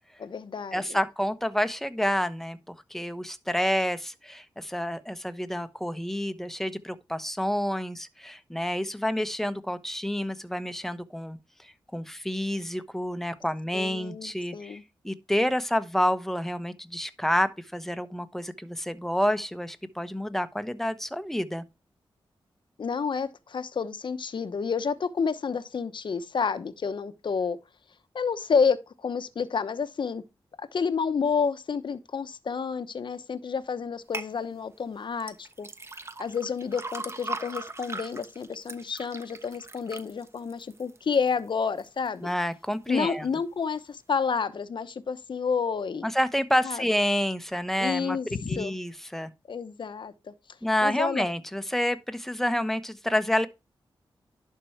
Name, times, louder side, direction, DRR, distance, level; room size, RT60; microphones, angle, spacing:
voice 1, 0.2-1.0 13.7-14.8 22.8-27.6 28.1-30.2 30.7-35.7 36.2-42.3 42.9-46.1 46.6-46.8 47.8-48.7 49.5-50.3 50.8-51.3, left 5 dB, 60° left, 0.9 m, -29 dB
voice 2, 0.7-14.8 15.0-21.6 42.2-43.3 46.0-48.2 48.5-49.3 50.6-53.5, equal, 5° left, 1.0 m, -29 dB
sound 1, 34.1-34.3 35.2-41.3 41.8-42.3 42.8-42.9, right 2 dB, 30° right, 1.0 m, -39 dB
11.0 x 4.6 x 4.4 m
cardioid pair, 70°, 9 cm